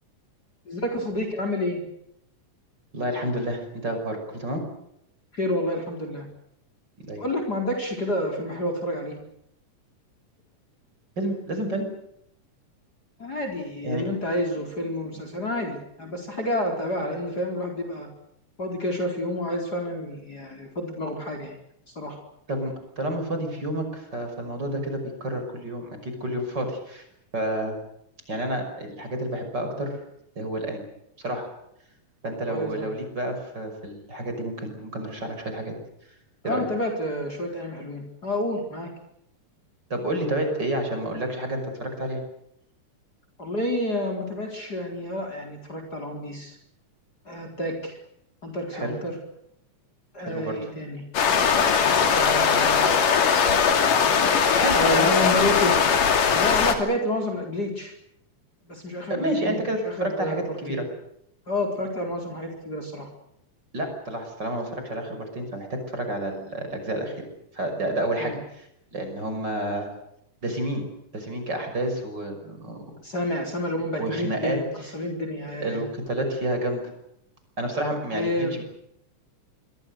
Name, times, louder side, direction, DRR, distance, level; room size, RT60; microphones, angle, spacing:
voice 1, 0.6-1.8 5.3-6.3 7.2-9.2 13.2-18.1 18.6-21.6 21.9-22.2 32.5-32.9 36.4-38.9 43.4-46.6 47.2-48.0 48.4-49.2 50.1-51.0 52.1-53.0 54.7-55.8 56.3-57.9 58.6-60.8 61.5-63.1 68.2-68.4 73.0-75.9 78.1-78.6, left 1 dB, 30° left, 4 dB, 4.9 m, -29 dB
voice 2, 2.9-4.6 7.1-7.3 11.2-11.9 13.8-14.1 22.5-27.0 27.3-27.8 28.3-30.0 30.4-30.8 31.2-31.5 32.2-35.7 36.4-36.6 39.9-42.2 48.7-48.9 50.2-50.7 54.6-55.4 59.1-60.9 63.7-67.2 67.5-68.6 68.9-69.9 70.4-70.8 71.1-72.8 74.0-74.6 75.6-76.8 77.6-78.6, right 1 dB, 30° right, 5 dB, 6.4 m, -29 dB
sound 1, 51.1-56.7, left 6 dB, 80° left, 4.2 m, -20 dB
26.0 x 24.5 x 6.7 m, 0.76 s
omnidirectional pair, 3.7 m